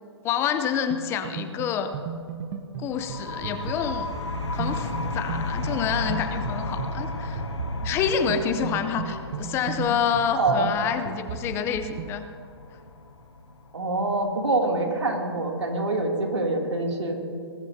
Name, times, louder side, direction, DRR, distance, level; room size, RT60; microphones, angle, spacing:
voice 1, 0.2-1.9 2.8-4.1 4.5-7.4 7.8-12.2, left 7 dB, 20° left, 10 dB, 0.6 m, -27 dB
sound 1, 0.9-12.2, right 6 dB, 35° right, 0.9 m, -36 dB
sound 2, 2.9-14.3, left 2 dB, 90° left, 1.6 m, -34 dB
voice 2, 10.3-10.7 13.7-17.2, right 2 dB, 90° right, 0 dB, 2.8 m, -25 dB
20.5 x 16.0 x 2.8 m, 2.5 s
hypercardioid pair, 140°, 14 cm